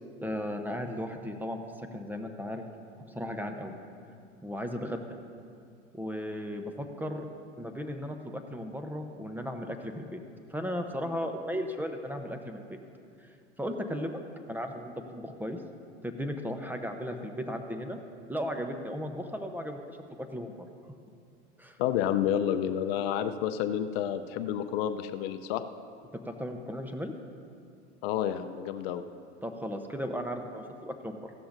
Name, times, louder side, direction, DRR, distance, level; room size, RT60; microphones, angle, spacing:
voice 1, 0.2-1.6 1.9-2.6 3.1-3.7 4.4-5.2 5.9-7.3 7.6-10.2 10.5-12.8 13.2-14.2 14.5-15.6 16.0-18.0 18.3-20.7 21.6-21.8 26.2-27.1 29.4-31.3, equal, 5° right, 5 dB, 0.7 m, -36 dB
voice 2, 21.8-25.6 28.0-29.0, left 10 dB, 55° left, 10 dB, 0.6 m, -29 dB
16.0 x 12.5 x 2.6 m, 2.3 s
hypercardioid pair, 95°, 36 cm